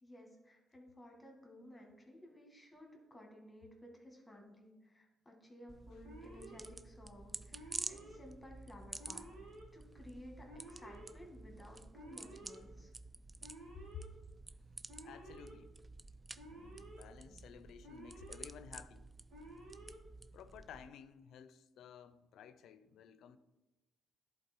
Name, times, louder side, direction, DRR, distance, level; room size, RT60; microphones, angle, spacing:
voice 1, 0.0-12.9, left 1 dB, 15° left, 1.8 m, -56 dB
sound 1, 5.7-20.9, right 2 dB, 20° right, 0.3 m, -50 dB
Alarm, 6.0-6.7 7.5-8.2 9.0-9.6 10.5-11.1 11.9-12.6 13.4-14.1 14.9-15.5 16.3-17.0 17.8-18.5 19.3-20.0, right 1 dB, 75° right, 2.0 m, -53 dB
voice 2, 15.0-15.7 16.5-19.1 20.3-23.4, left 8 dB, 80° left, 0.5 m, -54 dB
10.5 x 3.9 x 4.4 m
cardioid pair, 90°, 0 cm